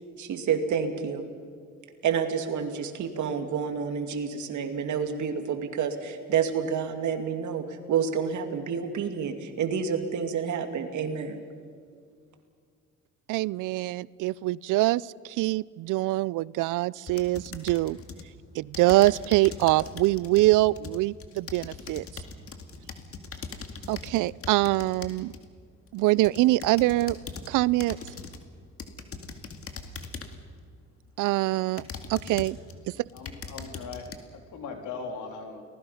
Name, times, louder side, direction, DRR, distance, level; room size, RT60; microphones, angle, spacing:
voice 1, 0.2-1.3 2.0-11.5, right 7 dB, 75° right, 6 dB, 2.4 m, -29 dB
voice 2, 13.3-18.0 18.5-22.2 23.9-25.3 25.9-27.2 27.5-28.0 31.2-31.8 32.1-32.6, right 18 dB, 90° right, 23 dB, 0.5 m, -24 dB
sound 1, 17.1-18.3 18.7-25.5 26.0-27.5 27.8-28.4 28.8-30.5 31.1-31.2 31.8-32.7 33.1-34.2, left 4 dB, 50° left, 2.2 m, -41 dB
voice 3, 33.1-35.6, left 4 dB, 80° left, 4 dB, 3.4 m, -39 dB
30.0 x 19.5 x 5.7 m, 2.1 s
cardioid pair, 90°, 30 cm